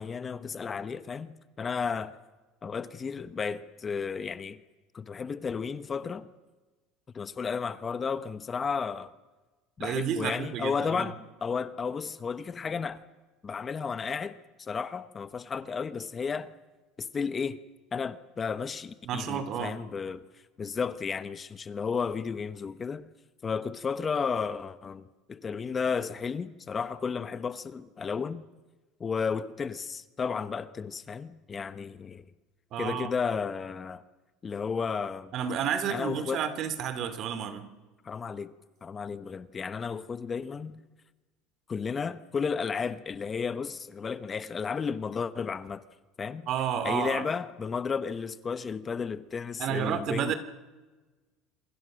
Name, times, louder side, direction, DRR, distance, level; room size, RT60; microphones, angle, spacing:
voice 1, 0.0-2.1 2.6-4.6 4.9-6.3 7.1-9.1 9.8-11.2 11.4-13.0 13.4-16.5 17.0-17.6 17.9-20.2 20.6-23.0 23.4-28.4 29.0-32.2 32.8-34.0 34.4-35.3 35.9-36.5 38.0-38.5 38.8-40.8 41.7-45.8 46.2-46.5 46.8-50.3, left 5 dB, 25° left, 1.1 m, -33 dB
voice 2, 9.8-11.1 19.0-19.8 32.7-33.1 35.3-37.7 46.5-47.3 49.6-50.3, right 8 dB, 50° right, 2.8 m, -31 dB
27.5 x 24.5 x 6.4 m
supercardioid pair, 120°, 0 cm